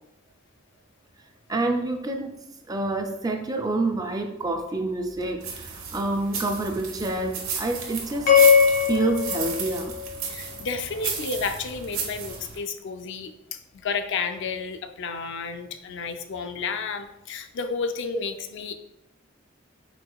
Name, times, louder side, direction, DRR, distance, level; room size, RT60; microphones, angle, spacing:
voice 1, 1.5-8.3 8.8-10.0, right 2 dB, 20° right, 5 dB, 0.4 m, -28 dB
sound 1, 5.4-12.6, right 6 dB, 80° right, 1.0 m, -34 dB
sound 2, 8.3-10.6, left 7 dB, 80° left, 1.1 m, -20 dB
voice 2, 10.3-18.7, left 5 dB, 65° left, 7 dB, 0.4 m, -32 dB
4.7 x 4.7 x 2.3 m, 0.85 s
head